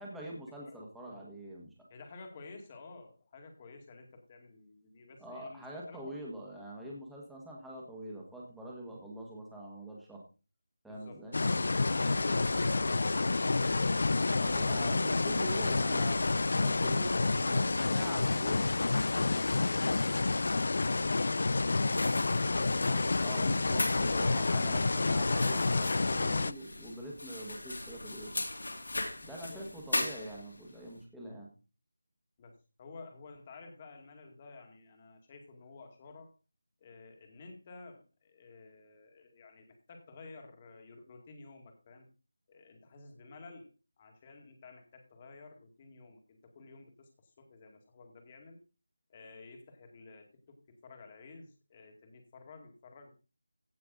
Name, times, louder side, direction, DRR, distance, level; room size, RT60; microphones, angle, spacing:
voice 1, 0.0-1.7 5.2-10.2 10.8-11.4 14.4-16.2 16.6-18.7 22.8-28.3 29.2-31.5, right 1 dB, ahead, -4 dB, 1.7 m, -44 dB
voice 2, 1.9-6.3 10.9-11.3 11.8-15.4 29.3-29.7 32.4-36.3 36.8-42.1 42.5-43.7 44.0-48.6 49.1-50.6 50.8-53.1, left 3 dB, 20° left, 4 dB, 2.0 m, -52 dB
sound 1, 11.3-26.5, left 3 dB, 55° left, 0.5 m, -29 dB
sound 2, 21.9-30.7, left 2 dB, 80° left, 3.3 m, -39 dB
16.0 x 5.9 x 3.9 m, 0.32 s
figure-of-eight pair, 170°, 0 cm